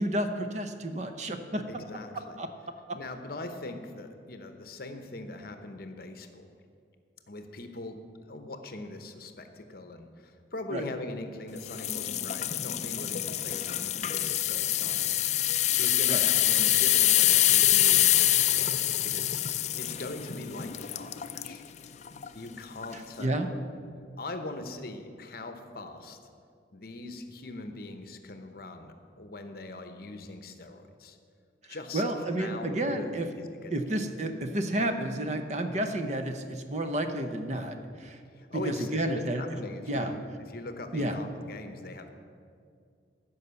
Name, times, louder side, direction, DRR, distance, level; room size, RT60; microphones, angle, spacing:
voice 1, 0.0-1.6 2.4-3.0 10.7-10.8 16.1-16.3 22.9-23.5 31.9-33.3 33.7-38.2 38.5-39.4 39.9-40.2 40.9-41.2, right 1 dB, 40° right, 7 dB, 0.7 m, -31 dB
voice 2, 1.7-2.4 2.9-6.5 7.3-8.0 8.3-15.3 15.8-19.4 19.8-21.6 22.3-23.6 24.2-26.2 26.7-31.2 31.7-33.1 33.4-34.0 38.3-40.2 40.5-42.1, left 2 dB, 55° left, 7 dB, 0.9 m, -41 dB
sound 1, 11.7-21.6 22.1-22.3 22.8-22.9, left 13 dB, 40° left, 0.4 m, -25 dB
14.5 x 5.6 x 6.9 m, 2.3 s
head